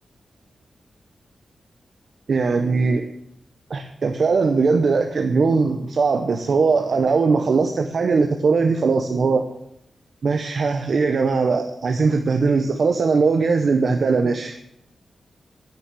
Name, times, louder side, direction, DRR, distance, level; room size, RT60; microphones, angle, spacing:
voice 1, 2.3-3.0 3.7-9.4 10.2-14.6, right 4 dB, 60° right, 4 dB, 0.8 m, -20 dB
10.0 x 6.1 x 7.6 m, 0.79 s
wide cardioid pair, 95°, 0 cm